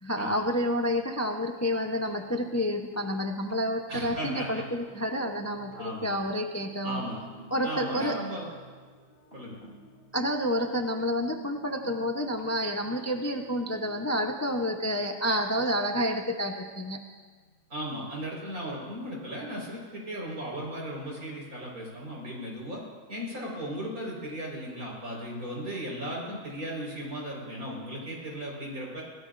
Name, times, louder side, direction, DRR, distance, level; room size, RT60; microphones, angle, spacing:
voice 1, 0.0-7.0 7.5-8.2 10.1-17.0, equal, 15° left, 3 dB, 0.5 m, -29 dB
sound 1, 1.7-15.7 16.9-17.0 17.4-17.5, right 1 dB, 40° right, 4.5 m, -53 dB
voice 2, 3.9-4.6 5.7-6.1 6.8-7.2 7.6-8.5 9.3-9.6 17.7-22.8 23.1-29.0, equal, 70° right, -2 dB, 5.2 m, -36 dB
25.5 x 16.5 x 2.6 m, 1.4 s
omnidirectional pair, 1.6 m